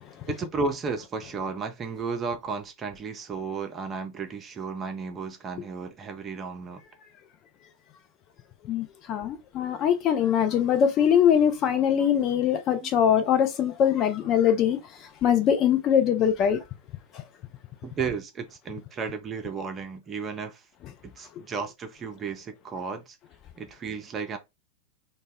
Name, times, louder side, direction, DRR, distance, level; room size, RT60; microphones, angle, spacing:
voice 1, 0.3-6.8 12.0-12.3 12.8-12.9 17.8-20.7 21.0-23.2 23.6-24.4, right 5 dB, 25° right, 0.4 m, -33 dB
voice 2, 8.7-16.6 17.1-17.2, left 9 dB, 35° left, 0.4 m, -22 dB
2.1 x 2.0 x 3.4 m
figure-of-eight pair, 95°, 0 cm